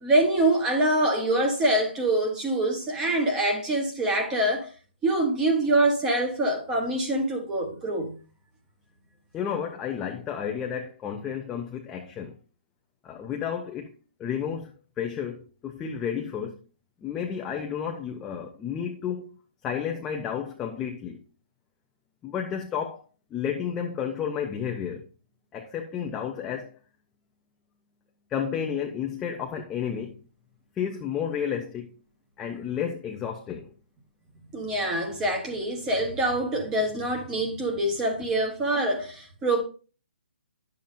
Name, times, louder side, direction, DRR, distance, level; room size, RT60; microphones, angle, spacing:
voice 1, 0.0-4.7 5.0-8.1 34.5-39.6, right 1 dB, 10° right, 1.0 m, -25 dB
voice 2, 9.3-12.3 13.0-13.9 14.2-14.7 15.0-16.6 17.0-19.3 19.6-21.2 22.2-23.0 23.3-25.0 25.5-26.8 28.3-30.2 30.8-31.9 32.4-33.7, left 8 dB, 10° left, 0.3 m, -31 dB
10.5 x 7.0 x 2.5 m
hypercardioid pair, 175°, 6 cm